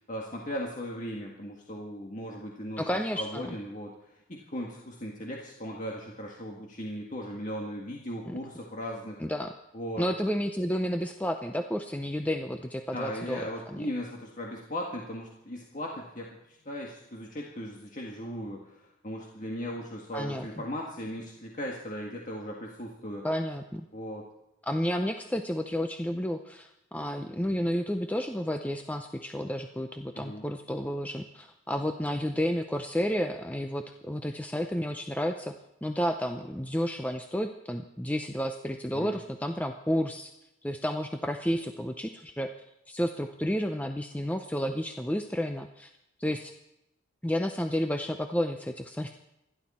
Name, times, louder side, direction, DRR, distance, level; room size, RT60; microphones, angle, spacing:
voice 1, 0.1-9.2 9.7-10.0 12.9-23.3 23.9-24.2 30.1-30.5 38.9-39.1, equal, 35° left, -1 dB, 1.8 m, -38 dB
voice 2, 2.8-3.6 8.3-8.4 9.2-9.5 10.0-13.9 20.1-20.5 23.2-23.9 24.6-35.5 35.8-40.3 40.6-42.5 42.9-45.9 46.2-46.5 47.2-49.1, equal, 5° left, 6 dB, 0.6 m, -31 dB
27.5 x 11.5 x 4.3 m, 0.88 s
head